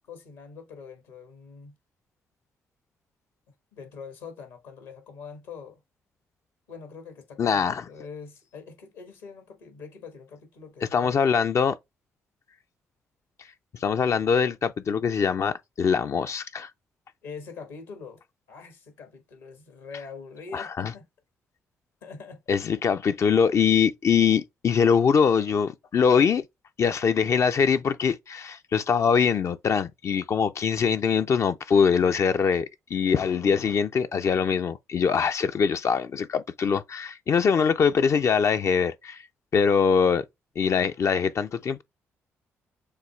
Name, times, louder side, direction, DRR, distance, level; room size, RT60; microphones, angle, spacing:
voice 1, 0.1-1.7 3.7-5.8 6.7-11.5 17.2-18.2 18.5-21.1 22.0-22.4, left 5 dB, 75° left, 1.6 m, -43 dB
voice 2, 7.4-7.8 10.9-11.8 13.8-16.7 20.5-20.9 22.5-26.4 26.8-39.2 39.5-40.2 40.6-41.8, left 6 dB, 45° left, 0.5 m, -23 dB
6.6 x 2.3 x 3.2 m
figure-of-eight pair, 40°, 7 cm